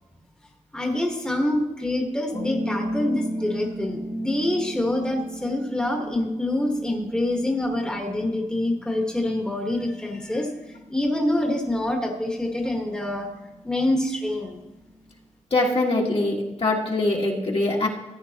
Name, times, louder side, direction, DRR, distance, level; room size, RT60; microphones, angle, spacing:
voice 1, 0.7-10.5 10.9-13.3 13.6-14.6, left 1 dB, 5° left, 1 dB, 1.3 m, -26 dB
sound 1, 2.3-15.1, equal, 65° right, 2.9 m, -37 dB
voice 2, 15.5-17.9, left 2 dB, 50° left, -1 dB, 1.7 m, -23 dB
14.5 x 9.4 x 2.9 m, 1.1 s
wide cardioid pair, 85°, 13 cm